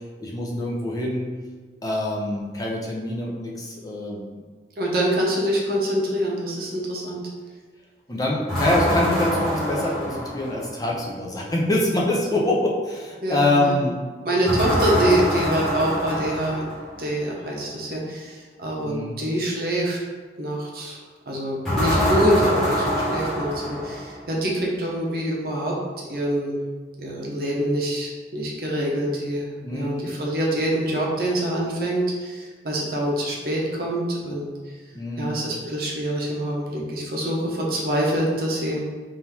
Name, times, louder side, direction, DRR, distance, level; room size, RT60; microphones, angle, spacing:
voice 1, 0.2-1.3 1.8-4.4 8.1-14.0 18.8-19.1 29.6-30.1 34.9-35.4, left 1 dB, 20° left, -3 dB, 0.5 m, -25 dB
voice 2, 4.8-7.2 13.2-13.8 14.2-16.6 17.0-20.0 20.4-21.0 21.3-25.7 26.1-26.6 27.0-34.7 35.2-38.8, right 1 dB, 55° right, -3 dB, 0.9 m, -25 dB
sound 1, 8.5-10.8 14.5-17.0 21.6-24.3, equal, 5° left, 1.2 m, -24 dB
3.8 x 2.7 x 4.3 m, 1.5 s
head